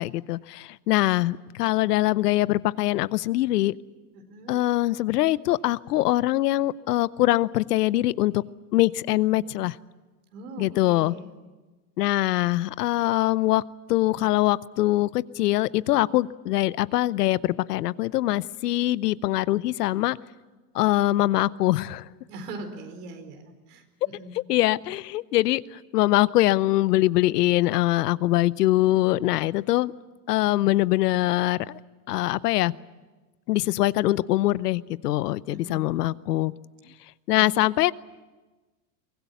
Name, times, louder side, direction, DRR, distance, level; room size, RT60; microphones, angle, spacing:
voice 1, 0.0-3.7 4.5-8.4 8.7-9.8 10.6-11.1 12.0-13.6 13.9-20.2 20.7-22.1 24.3-29.9 30.3-31.8 32.1-32.7 33.5-36.5 37.3-37.9, left 16 dB, 80° left, 19 dB, 0.8 m, -23 dB
voice 2, 4.1-4.6 10.3-11.3 22.3-24.3 35.5-36.2 37.3-37.4, right 2 dB, 75° right, 6 dB, 4.7 m, -41 dB
24.0 x 19.0 x 9.3 m, 1.2 s
hypercardioid pair, 110°, 47 cm